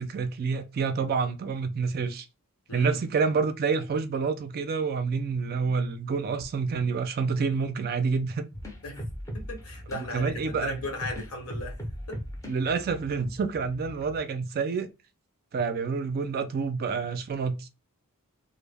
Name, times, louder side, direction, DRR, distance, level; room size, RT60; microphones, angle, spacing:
voice 1, 0.0-2.3 2.7-8.5 10.0-10.8 12.5-14.9 15.5-17.7, right 5 dB, 45° right, 0.3 m, -28 dB
sound 1, 8.5-14.2, equal, 15° left, 0.5 m, -40 dB
voice 2, 9.3-11.8 12.1-12.2, left 2 dB, 70° left, 1.0 m, -37 dB
2.1 x 2.0 x 3.2 m
head